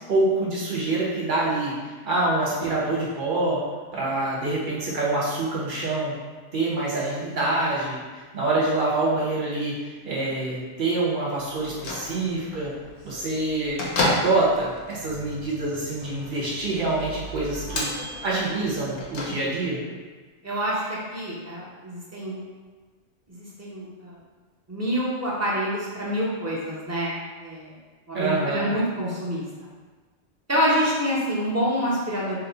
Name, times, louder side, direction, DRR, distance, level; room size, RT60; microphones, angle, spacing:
voice 1, 0.1-3.6 3.9-6.1 6.5-8.0 8.3-12.7 13.0-17.9 18.2-19.9 28.1-28.7, right 2 dB, 45° right, -6 dB, 0.9 m, -26 dB
Bell / Microwave oven, 11.6-19.8, left 2 dB, 65° left, 0.9 m, -33 dB
voice 2, 20.4-22.3 23.3-24.1 24.7-27.8 28.1-29.7 30.5-32.4, equal, 20° right, -7 dB, 0.4 m, -27 dB
2.9 x 2.1 x 3.9 m, 1.4 s
omnidirectional pair, 1.3 m